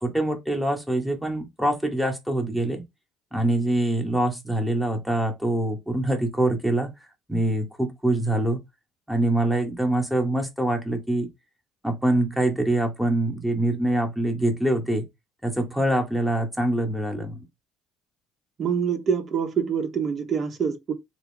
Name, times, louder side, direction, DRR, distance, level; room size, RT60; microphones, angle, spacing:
voice 1, 0.0-2.8 3.3-6.9 7.3-8.6 9.1-11.3 11.8-15.0 15.4-17.4, right 1 dB, ahead, 1.2 m, -24 dB
voice 2, 18.6-20.9, right 7 dB, 45° right, 1.0 m, -25 dB
3.6 x 2.3 x 3.7 m
supercardioid pair, 85°, 0 cm